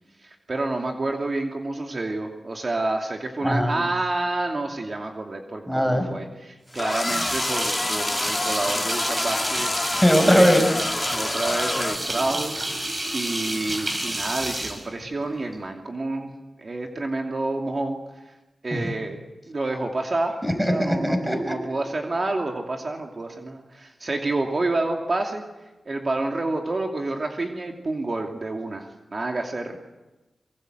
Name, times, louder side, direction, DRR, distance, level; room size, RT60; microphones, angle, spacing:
voice 1, 0.2-9.8 10.2-10.5 11.1-16.3 16.6-18.3 18.6-19.2 19.5-20.3 20.7-25.4 25.8-29.7, right 2 dB, 45° right, 2 dB, 2.7 m, -29 dB
voice 2, 3.4-3.8 5.7-6.1 9.9-10.6 18.7-18.9 20.4-21.6, equal, 5° right, 6 dB, 5.1 m, -20 dB
sound 1, 6.7-12.0, left 2 dB, 35° left, 2.4 m, -27 dB
sound 2, 6.7-15.5, right 1 dB, 30° right, 5.7 m, -30 dB
24.0 x 23.5 x 8.0 m, 1.1 s
cardioid pair, 70°, 0 cm